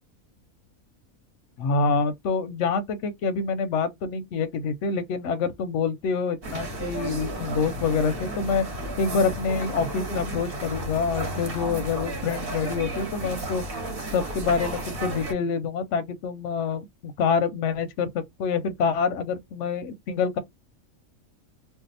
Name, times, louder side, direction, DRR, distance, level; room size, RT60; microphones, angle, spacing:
voice 1, 1.6-8.6 9.0-13.6 14.1-20.4, left 5 dB, 65° left, 0.8 m, -26 dB
sound 1, 6.4-15.3, right 1 dB, 45° right, 1.1 m, -33 dB
2.7 x 2.1 x 3.9 m
omnidirectional pair, 1.5 m